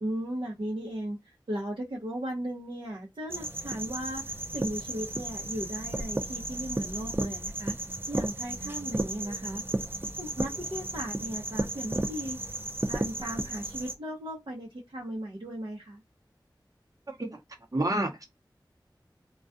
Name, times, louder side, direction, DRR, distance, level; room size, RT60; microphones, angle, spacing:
voice 1, 0.0-9.6 10.2-12.4 12.8-16.0, right 1 dB, 90° right, 0.8 m, -36 dB
sound 1, 3.3-13.9, right 2 dB, 25° right, 0.4 m, -34 dB
voice 2, 17.7-18.2, right 1 dB, 45° right, 0.8 m, -28 dB
2.3 x 2.3 x 2.5 m
wide cardioid pair, 40°, 8 cm